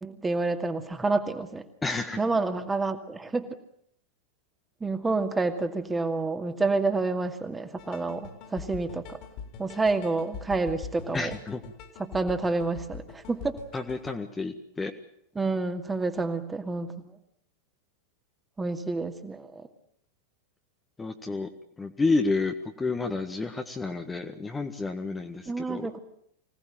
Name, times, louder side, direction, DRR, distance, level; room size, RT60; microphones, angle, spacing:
voice 1, 0.0-1.6 2.2-3.5 4.8-9.2 9.6-11.3 12.1-13.6 15.4-17.1 18.6-19.6 25.5-26.0, right 3 dB, 10° right, 7 dB, 2.3 m, -28 dB
voice 2, 1.8-2.2 11.1-11.6 13.7-14.9 21.0-21.5 21.8-25.9, left 3 dB, 10° left, 5 dB, 1.6 m, -30 dB
sound 1, 7.8-14.2, left 6 dB, 45° left, 3.9 m, -43 dB
25.0 x 18.0 x 9.0 m, 0.71 s
figure-of-eight pair, 90°, 0 cm